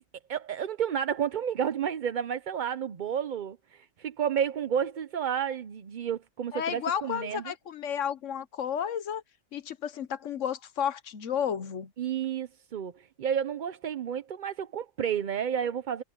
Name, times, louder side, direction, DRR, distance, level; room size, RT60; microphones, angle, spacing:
voice 1, 0.3-7.5 12.0-16.0, right 8 dB, 50° right, 0.6 m, -31 dB
voice 2, 6.5-9.2 9.5-11.9, left 8 dB, 70° left, 1.3 m, -32 dB
omnidirectional pair, 1.3 m